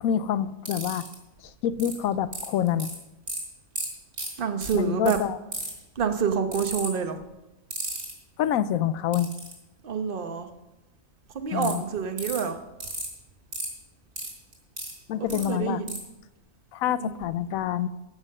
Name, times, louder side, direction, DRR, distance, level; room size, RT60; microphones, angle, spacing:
voice 1, 0.0-1.0 1.6-2.9 4.7-5.4 8.4-9.3 11.5-11.8 15.1-15.8 16.7-17.9, left 10 dB, 85° left, 15 dB, 1.0 m, -26 dB
sound 1, 0.7-1.1 1.8-1.9 2.3-2.9 3.3-3.4 3.8-3.9 4.1-4.3 4.6-4.7 5.1-5.2 5.5-5.8 6.5-6.9 7.7-8.1 9.1-9.5 11.6-11.7 12.2-12.4 12.8-13.1 13.5-13.7 14.2-14.9 15.3-15.4 15.9-16.0, right 2 dB, 70° right, 3.8 m, -33 dB
voice 2, 4.4-5.2 6.0-7.2 9.8-10.5 11.3-12.6 15.2-16.0 17.0-17.2, right 6 dB, 45° right, 6 dB, 1.1 m, -27 dB
15.0 x 5.7 x 6.5 m, 1.0 s
omnidirectional pair, 1.4 m